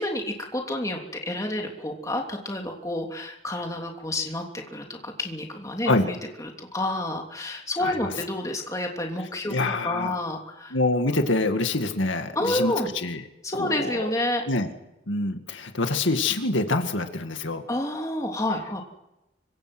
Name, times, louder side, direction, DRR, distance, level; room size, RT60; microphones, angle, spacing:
voice 1, 0.0-9.6 9.8-10.8 12.3-12.9 13.4-14.4 17.7-18.8, left 1 dB, 15° left, 1 dB, 3.1 m, -29 dB
voice 2, 7.8-8.2 9.4-10.1 10.7-12.7 13.0-13.2 13.6-14.1 14.5-14.7 15.1-17.6, left 2 dB, 75° left, 6 dB, 2.2 m, -25 dB
25.5 x 24.5 x 6.3 m, 0.94 s
head